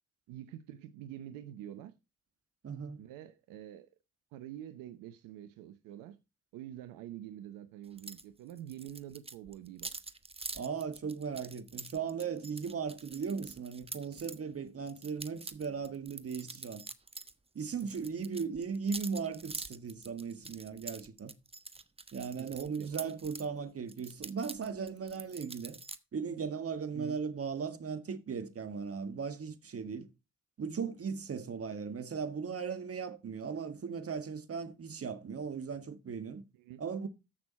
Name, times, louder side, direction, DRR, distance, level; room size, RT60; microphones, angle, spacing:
voice 1, 0.3-1.9 3.0-3.9 4.3-6.2 6.5-9.9 17.8-18.0 22.4-23.1 26.9-27.2 36.5-36.8, right 12 dB, 80° right, 0.8 m, -46 dB
voice 2, 2.6-3.0 10.5-16.8 17.5-21.3 22.1-25.8 26.1-30.1 30.6-36.4 36.8-37.1, right 6 dB, 45° right, 1.7 m, -37 dB
sound 1, 8.0-8.2 8.5-14.4 14.9-17.3 17.6-23.5 23.9-26.0, right 3 dB, 20° right, 1.1 m, -45 dB
14.0 x 6.3 x 4.2 m
hypercardioid pair, 50°, 32 cm